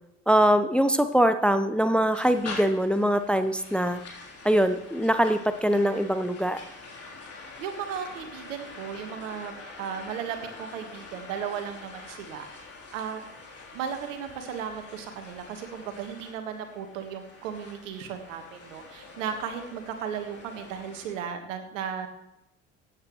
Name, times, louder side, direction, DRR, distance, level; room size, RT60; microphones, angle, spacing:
voice 1, 0.3-4.0 4.4-6.6, equal, 5° left, 10 dB, 0.8 m, -23 dB
sound 1, 2.1-21.3, left 3 dB, 35° left, 3.6 m, -45 dB
voice 2, 7.6-12.5 12.9-13.2 13.7-22.1, right 7 dB, 75° right, 7 dB, 1.6 m, -35 dB
15.5 x 9.0 x 3.1 m, 0.84 s
hypercardioid pair, 60°, 39 cm